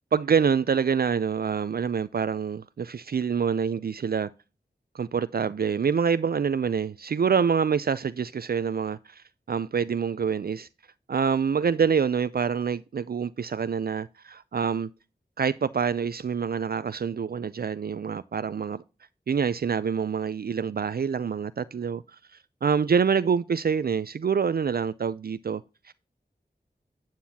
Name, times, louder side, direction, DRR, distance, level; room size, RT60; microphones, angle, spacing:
voice 1, 0.1-4.3 4.9-10.7 11.1-14.9 15.4-18.8 19.3-22.0 22.6-25.9, right 6 dB, 65° right, 0.4 m, -26 dB
9.4 x 8.9 x 2.8 m
wide cardioid pair, 50°, 17 cm